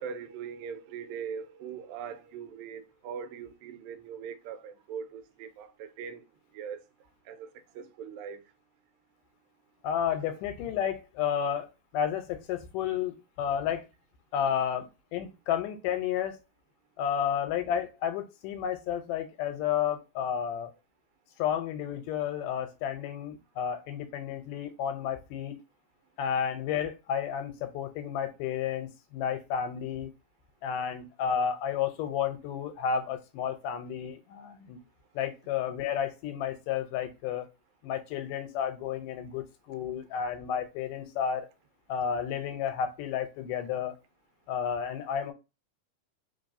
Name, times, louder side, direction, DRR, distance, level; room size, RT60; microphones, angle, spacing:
voice 1, 0.0-6.2 6.5-6.8 7.3-7.5 7.8-8.4, right 7 dB, 90° right, 2.3 m, -41 dB
voice 2, 9.8-11.7 11.9-13.8 14.3-16.4 17.0-20.7 21.4-25.5 26.2-30.1 30.6-34.8 35.2-37.5 37.8-41.5 41.9-44.0 44.5-45.3, left 8 dB, 80° left, 2.2 m, -31 dB
4.6 x 3.5 x 2.6 m
omnidirectional pair, 3.9 m